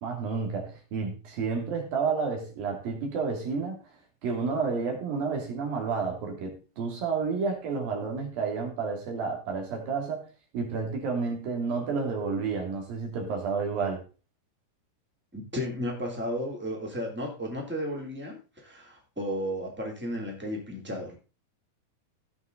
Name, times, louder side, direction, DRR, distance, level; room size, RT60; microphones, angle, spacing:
voice 1, 0.0-3.8 4.2-10.3 10.5-14.0, right 5 dB, 70° right, 4.6 m, -30 dB
voice 2, 15.3-21.2, equal, 5° right, 2.4 m, -34 dB
17.0 x 5.9 x 4.0 m
omnidirectional pair, 4.3 m